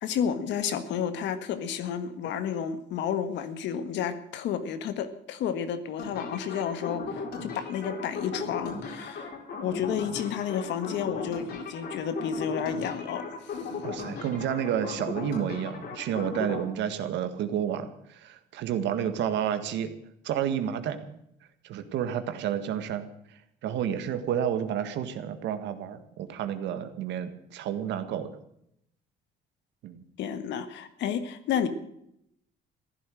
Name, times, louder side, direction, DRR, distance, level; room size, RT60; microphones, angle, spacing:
voice 1, 0.0-9.3 9.6-13.6 30.2-31.7, left 8 dB, 80° left, 10 dB, 1.7 m, -31 dB
sound 1, 6.0-16.6, left 4 dB, 60° left, 4.2 m, -37 dB
voice 2, 13.8-19.9 20.2-21.2 21.6-23.1 23.6-28.3 29.8-30.0, right 9 dB, 80° right, 9 dB, 1.8 m, -30 dB
15.0 x 11.5 x 7.7 m, 0.75 s
cardioid pair, 105°, 18 cm